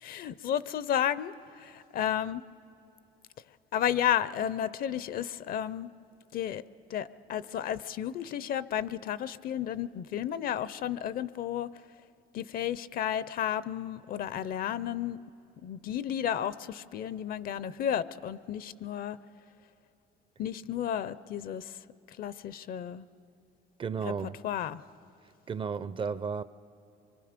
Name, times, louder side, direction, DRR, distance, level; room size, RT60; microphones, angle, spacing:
voice 1, 0.0-2.4 3.7-5.9 6.3-6.6 6.9-11.7 12.3-15.2 15.6-19.2 20.4-21.8 22.1-23.1 24.0-24.1 24.4-24.8, left 10 dB, 60° left, 0.6 m, -32 dB
voice 2, 23.8-24.4 25.5-26.4, right 6 dB, 30° right, 0.5 m, -33 dB
25.0 x 24.0 x 5.2 m
cardioid pair, 110°, 17 cm